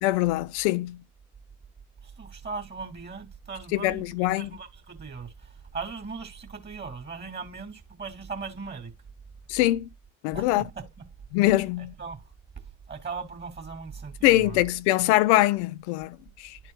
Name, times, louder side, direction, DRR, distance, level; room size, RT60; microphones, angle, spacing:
voice 1, 0.0-1.0 3.7-4.5 9.5-9.9 10.2-10.6 11.3-11.9 14.2-16.6, left 16 dB, 70° left, 0.5 m, -23 dB
voice 2, 2.2-4.1 4.4-5.3 5.7-8.9 10.3-10.5 10.8-10.9 11.8-12.2 12.9-14.6, right 4 dB, 30° right, 2.6 m, -38 dB
12.0 x 4.6 x 2.2 m
figure-of-eight pair, 45°, 36 cm